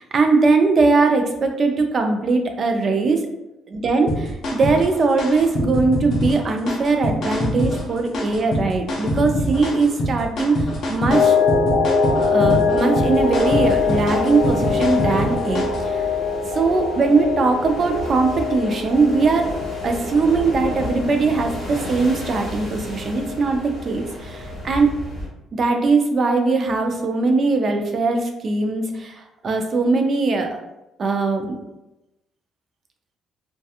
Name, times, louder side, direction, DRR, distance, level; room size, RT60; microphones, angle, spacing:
voice 1, 0.0-3.2 3.7-11.4 12.2-16.1 16.4-19.5 19.8-24.9 25.5-30.6 31.0-31.6, right 3 dB, 40° right, 4 dB, 0.4 m, -20 dB
sound 1, 4.1-15.9, equal, 50° left, 0.5 m, -25 dB
sound 2, 11.1-24.0 24.4-24.5, left 5 dB, 75° left, 0.8 m, -23 dB
sound 3, 12.8-25.3, equal, 15° right, 1.0 m, -34 dB
2.7 x 2.2 x 2.3 m, 0.92 s
cardioid pair, 145°, 0 cm